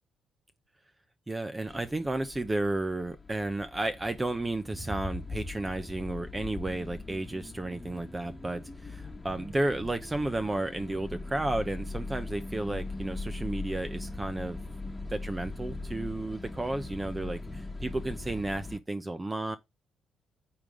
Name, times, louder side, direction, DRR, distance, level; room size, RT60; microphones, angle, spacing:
voice 1, 1.3-14.6 15.1-19.6, right 2 dB, 20° right, 0.8 m, -32 dB
sound 1, 1.7-18.8, left 2 dB, 20° left, 1.4 m, -40 dB
8.9 x 3.8 x 4.9 m
cardioid pair, 90°, 0 cm